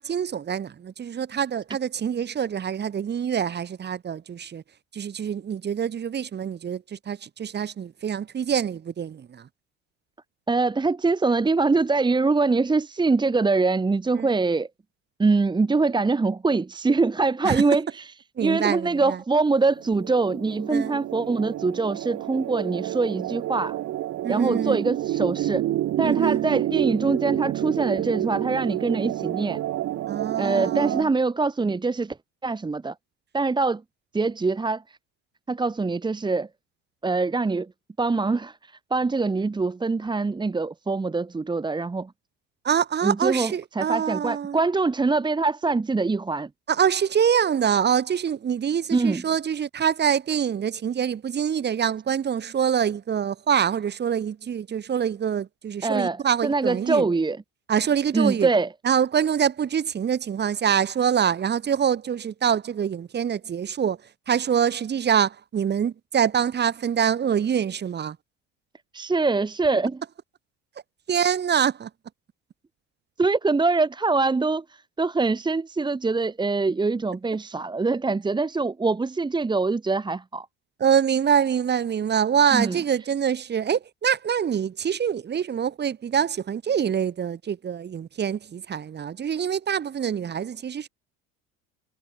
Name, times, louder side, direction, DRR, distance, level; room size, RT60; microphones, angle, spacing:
voice 1, 0.0-4.6 4.9-9.5 14.1-14.3 17.4-17.6 18.4-19.2 20.7-21.0 24.2-24.9 26.0-26.5 30.1-31.1 42.6-44.6 46.7-57.1 57.7-58.5 58.8-64.0 64.3-68.2 71.1-71.9 80.8-90.9, right 8 dB, 35° right, 4.2 m, -25 dB
voice 2, 10.5-14.7 15.2-18.1 18.4-23.8 24.3-25.7 26.0-29.6 30.4-32.2 32.4-32.9 33.3-33.8 34.1-35.0 35.5-36.5 37.0-37.7 38.0-42.1 43.0-46.5 48.9-49.2 55.8-57.4 58.1-58.7 68.9-70.0 73.2-80.5 82.5-82.8, right 3 dB, 15° right, 1.7 m, -24 dB
sound 1, 19.6-31.0, right 13 dB, 55° right, 3.2 m, -29 dB
supercardioid pair, 105°, 29 cm